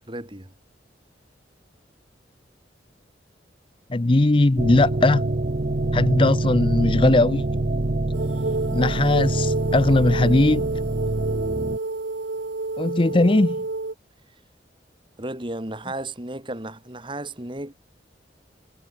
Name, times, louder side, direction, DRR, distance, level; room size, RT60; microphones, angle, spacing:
voice 1, 0.1-0.5 15.2-17.7, right 1 dB, 25° right, 2.7 m, -34 dB
voice 2, 3.9-5.3 5.9-7.4 8.7-10.7 12.8-13.6, left 2 dB, 30° left, 0.6 m, -19 dB
sound 1, 4.6-11.8, right 2 dB, 45° right, 0.8 m, -25 dB
sound 2, 8.1-13.9, right 3 dB, 80° right, 1.1 m, -29 dB
head